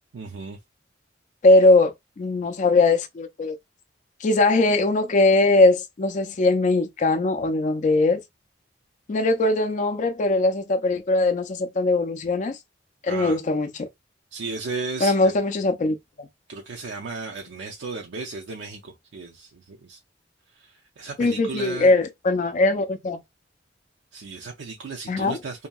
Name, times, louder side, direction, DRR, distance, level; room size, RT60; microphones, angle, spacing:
voice 1, 0.1-0.6 13.1-13.4 14.3-15.3 16.5-20.0 20.5-21.9 24.1-25.7, right 4 dB, 85° right, 0.5 m, -35 dB
voice 2, 1.4-1.9 2.2-3.6 4.2-8.2 9.1-12.6 13.0-13.9 15.0-16.3 21.2-23.2 25.1-25.4, left 2 dB, 40° left, 0.4 m, -20 dB
2.7 x 2.6 x 2.2 m
head